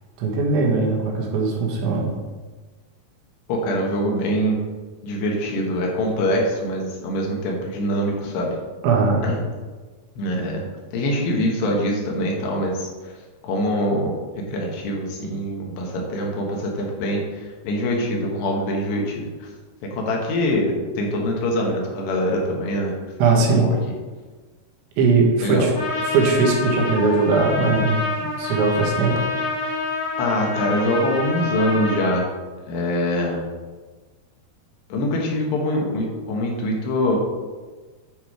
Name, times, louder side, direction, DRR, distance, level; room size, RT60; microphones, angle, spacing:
voice 1, 0.2-2.2 8.8-9.2 23.2-23.7 25.0-25.7 26.1-29.3, right 4 dB, 85° right, -1 dB, 3.8 m, -20 dB
voice 2, 3.5-4.6 5.0-8.6 9.2-9.4 10.2-10.6 10.9-13.1 13.4-19.5 19.8-23.0 23.5-23.8 25.4-25.7 30.2-32.3 32.7-33.4 34.9-37.2, left 1 dB, 75° left, -1 dB, 3.3 m, -24 dB
Trumpet, 25.7-32.2, left 3 dB, 50° left, 2.4 m, -27 dB
9.9 x 4.5 x 4.9 m, 1.3 s
omnidirectional pair, 5.1 m